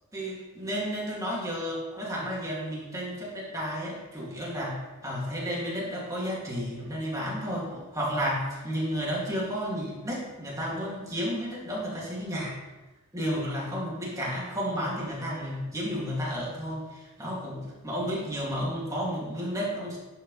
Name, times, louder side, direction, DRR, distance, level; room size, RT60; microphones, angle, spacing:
voice 1, 0.1-12.6 13.1-20.0, equal, 15° right, -5 dB, 2.4 m, -32 dB
11.0 x 6.3 x 3.3 m, 1.1 s
head